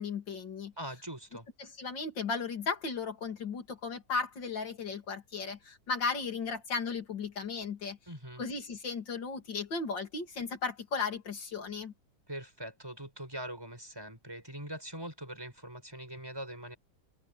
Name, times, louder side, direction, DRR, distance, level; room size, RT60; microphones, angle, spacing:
voice 1, 0.0-0.7 1.6-8.0 8.4-11.9, left 4 dB, 85° left, 3.6 m, -35 dB
voice 2, 0.8-1.5 8.1-8.4 12.3-16.8, right 1 dB, 10° right, 7.5 m, -42 dB
open air
omnidirectional pair, 1.9 m